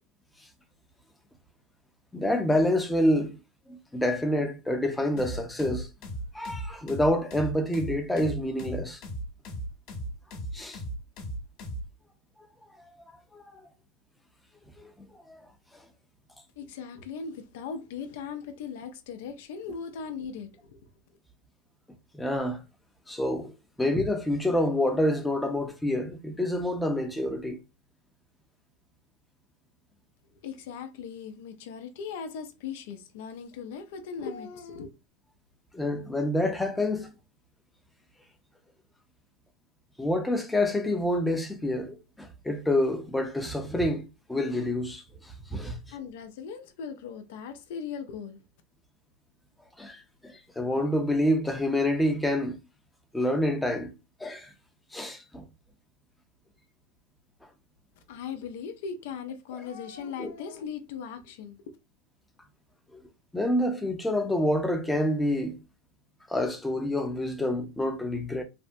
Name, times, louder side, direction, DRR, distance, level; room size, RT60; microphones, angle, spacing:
voice 1, 2.1-3.3 3.9-5.9 6.3-9.0 10.5-10.8 13.3-13.4 15.3-15.4 22.1-22.6 23.1-23.5 23.8-27.6 35.7-37.1 40.0-45.0 45.5-45.8 49.8-50.0 50.6-52.6 53.1-53.9 54.2-54.5 54.9-55.4 60.2-60.3 63.3-65.6 66.3-68.4, left 1 dB, 5° left, 0.6 m, -27 dB
sound 1, 5.2-11.9, right 1 dB, 50° left, 0.9 m, -36 dB
voice 2, 16.6-20.8 30.4-34.9 45.9-48.4 58.1-61.6, left 6 dB, 75° left, 0.5 m, -38 dB
3.4 x 2.0 x 2.6 m
supercardioid pair, 130°, 0 cm